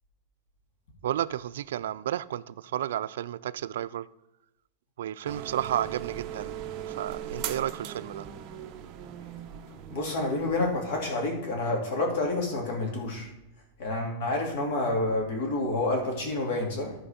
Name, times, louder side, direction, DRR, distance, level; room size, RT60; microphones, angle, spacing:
voice 1, 1.0-4.1 5.0-6.6 6.9-8.3, right 11 dB, 85° right, 0.3 m, -32 dB
sound 1, 5.2-10.9, right 9 dB, 35° right, 0.7 m, -39 dB
voice 2, 9.9-13.3 13.8-16.9, left 2 dB, 60° left, 2.6 m, -28 dB
13.5 x 4.6 x 5.0 m
supercardioid pair, 160°, 0 cm